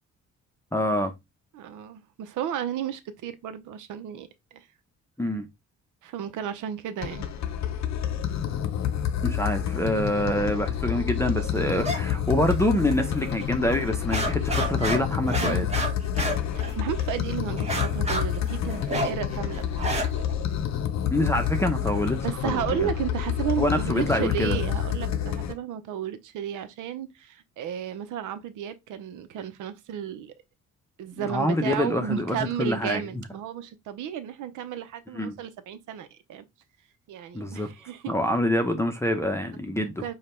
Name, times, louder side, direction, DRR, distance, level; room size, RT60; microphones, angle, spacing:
voice 1, 0.7-1.1 5.2-5.5 9.2-15.7 21.1-22.9 23.6-24.6 31.1-33.0 35.1-35.4 37.3-37.7 38.1-40.1, left 1 dB, 10° left, 0.7 m, -26 dB
voice 2, 1.5-4.6 6.0-7.3 15.4-15.7 16.5-20.2 22.2-30.3 31.0-36.4 37.1-38.1 40.0-40.1, right 9 dB, 80° right, 0.8 m, -33 dB
sound 1, 7.0-25.5, left 9 dB, 65° left, 0.8 m, -28 dB
sound 2, 11.8-12.0 12.3-13.1 13.4-13.5 13.9-17.1 17.6-20.3, right 1 dB, 20° right, 1.5 m, -30 dB
5.0 x 2.4 x 4.3 m
cardioid pair, 90°, 30 cm